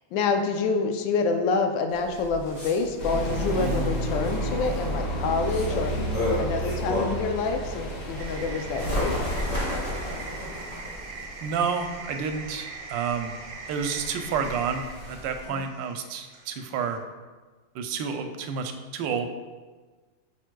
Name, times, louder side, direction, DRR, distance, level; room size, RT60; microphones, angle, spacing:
voice 1, 0.1-9.3 15.5-15.6, left 4 dB, 80° left, 6 dB, 1.3 m, -27 dB
Bird, 1.9-7.3 7.8-15.5, left 1 dB, 35° left, 2.5 m, -34 dB
sound 1, 3.0-9.5, right 1 dB, 65° left, 2.0 m, -31 dB
voice 2, 3.6-3.9 11.4-13.3 13.7-17.0 17.7-19.3, right 6 dB, 80° right, 6 dB, 1.3 m, -30 dB
air conditioning ac, 8.2-17.0, right 4 dB, 60° right, 1.2 m, -42 dB
9.0 x 6.0 x 2.2 m, 1.3 s
omnidirectional pair, 2.0 m